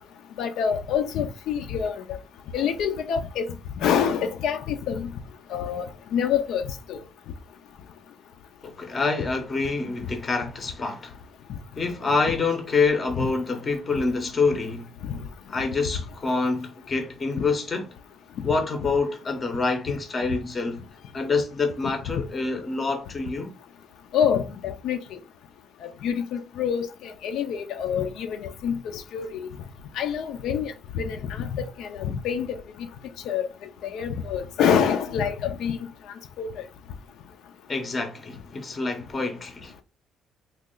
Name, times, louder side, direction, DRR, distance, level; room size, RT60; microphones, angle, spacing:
voice 1, 0.4-2.2 2.5-3.5 3.8-5.1 5.5-5.9 6.1-6.6 6.9-7.0 13.2-13.3 15.0-15.2 24.1-25.2 25.8-29.5 30.0-32.6 33.3-33.5 33.8-35.8 36.4-36.5, left 7 dB, 70° left, 0.5 m, -26 dB
voice 2, 8.6-11.2 11.8-14.9 15.5-17.9 18.4-20.8 21.1-23.5 37.7-39.7, left 4 dB, 25° left, 0.7 m, -26 dB
3.1 x 2.3 x 3.7 m
cardioid pair, 150°, 0 cm